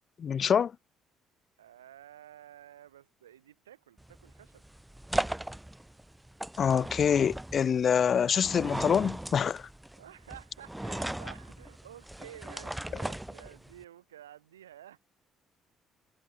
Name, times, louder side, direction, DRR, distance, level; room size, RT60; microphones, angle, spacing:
voice 1, 0.2-0.7 6.6-9.6, left 7 dB, 45° left, 0.3 m, -25 dB
voice 2, 1.6-4.6 10.0-15.0, right 11 dB, 80° right, 7.2 m, -52 dB
sound 1, 4.0-13.8, right 1 dB, 5° right, 2.7 m, -38 dB
figure-of-eight pair, 50°, 0 cm